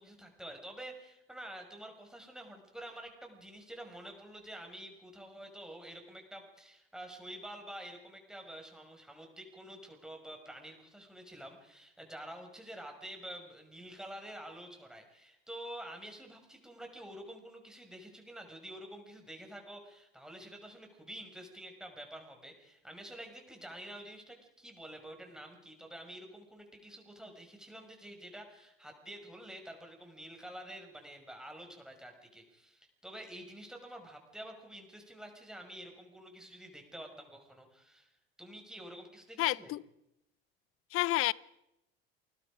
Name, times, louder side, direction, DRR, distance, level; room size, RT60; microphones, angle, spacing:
voice 1, 0.0-38.1 38.4-39.7, right 1 dB, ahead, 6.3 m, -48 dB
voice 2, 39.4-39.8 40.9-41.3, left 17 dB, 45° left, 0.7 m, -29 dB
28.5 x 20.5 x 5.1 m
hypercardioid pair, 80°, 30 cm